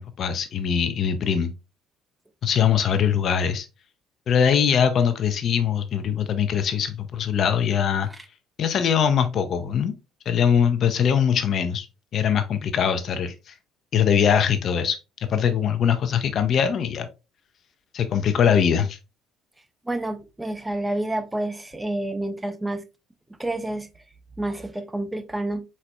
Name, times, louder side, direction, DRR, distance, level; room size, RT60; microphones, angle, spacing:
voice 1, 0.0-1.5 2.4-3.7 4.3-8.1 8.6-9.9 10.3-11.9 12.1-13.5 13.9-15.0 15.3-17.1 17.9-19.0, left 8 dB, 45° left, 0.5 m, -22 dB
voice 2, 19.8-22.8 23.4-23.9 24.4-25.6, right 1 dB, 10° right, 0.6 m, -29 dB
4.2 x 4.0 x 2.3 m
figure-of-eight pair, 55°, 0 cm